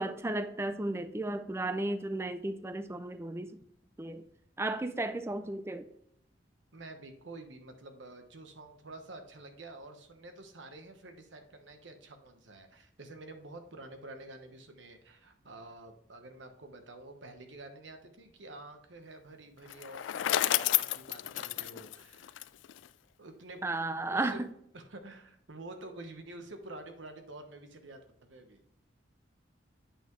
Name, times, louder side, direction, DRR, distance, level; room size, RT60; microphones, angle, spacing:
voice 1, 0.0-3.6 4.0-4.2 4.6-5.9 23.6-24.5, right 2 dB, 15° right, 0.4 m, -34 dB
voice 2, 6.7-22.3 23.2-24.4 24.7-28.6, right 2 dB, 85° right, 1.1 m, -49 dB
Bicycle, 19.7-22.9, left 13 dB, 85° left, 0.3 m, -31 dB
8.3 x 5.9 x 3.1 m
head